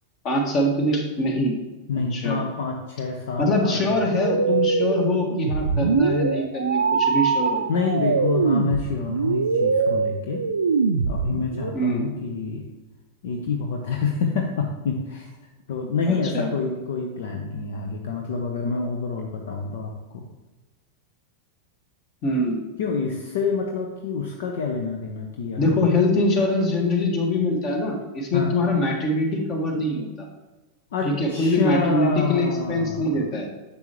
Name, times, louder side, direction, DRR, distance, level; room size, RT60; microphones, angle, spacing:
voice 1, 0.2-1.6 2.1-2.4 3.4-7.6 11.7-12.1 16.1-16.5 22.2-22.6 25.6-30.3 31.0-33.5, left 1 dB, 35° left, 2 dB, 1.8 m, -23 dB
voice 2, 1.9-4.0 7.7-10.4 11.0-12.7 13.2-15.3 15.7-20.3 22.8-25.9 28.3-28.5 30.9-33.2, left 4 dB, 60° left, 2 dB, 0.8 m, -27 dB
sound 1, 4.1-11.7, right 5 dB, 70° right, 0.4 m, -23 dB
10.5 x 7.0 x 3.1 m, 1.1 s
figure-of-eight pair, 90°, 0 cm